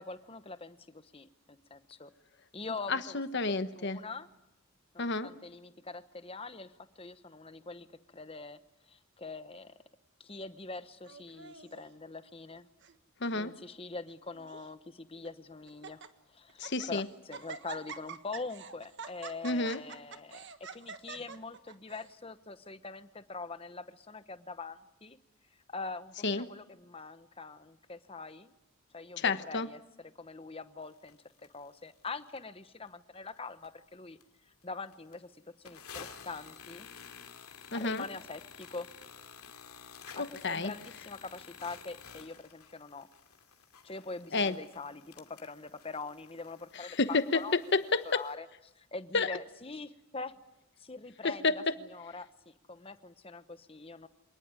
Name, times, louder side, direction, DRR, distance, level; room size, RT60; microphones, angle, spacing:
voice 1, 0.0-2.1 2.5-3.2 3.8-4.3 4.9-8.6 8.9-9.7 10.2-12.7 13.3-16.0 16.3-20.4 20.7-25.2 25.7-28.5 28.9-31.2 31.5-34.2 34.5-35.3 35.6-36.9 37.7-38.9 40.2-43.1 43.8-47.5 48.0-48.5 48.7-50.3 50.8-51.5 51.9-54.1, left 3 dB, 25° left, 12 dB, 1.0 m, -44 dB
voice 2, 2.9-4.0 5.0-5.3 13.2-13.5 16.6-17.1 19.4-19.8 26.2-26.5 29.2-29.7 37.7-38.1 40.1-40.7 44.3-44.6 46.7-48.2 49.1-49.4 51.2-51.7, left 3 dB, 50° left, 11 dB, 1.1 m, -30 dB
Laughter, 11.1-11.9 12.6-13.0 13.2-13.3 14.1-14.7 15.2-15.3 15.7-16.1 16.5-16.9 17.3-22.1, right 5 dB, 55° right, 1.5 m, -46 dB
sound 1, 31.1-31.2 31.4-31.5 32.0-32.4 32.9-33.0 33.3-33.9 34.2-34.3 34.6-34.7 34.9-35.1 35.6-48.3, left 7 dB, 85° left, 2.5 m, -52 dB
26.5 x 19.5 x 9.7 m, 0.90 s
head